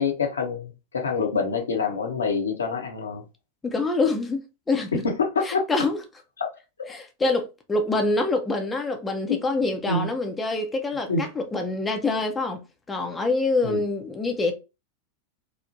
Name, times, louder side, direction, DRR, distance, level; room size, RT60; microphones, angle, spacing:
voice 1, 0.0-3.2 4.9-5.7 6.4-6.5 9.3-10.1 11.1-11.3 13.6-13.8, left 4 dB, 70° left, 0.7 m, -26 dB
voice 2, 3.6-5.1 5.4-6.0 6.9-12.6 12.9-14.5, left 3 dB, 15° left, 0.5 m, -26 dB
3.1 x 2.0 x 2.7 m
figure-of-eight pair, 90°, 0 cm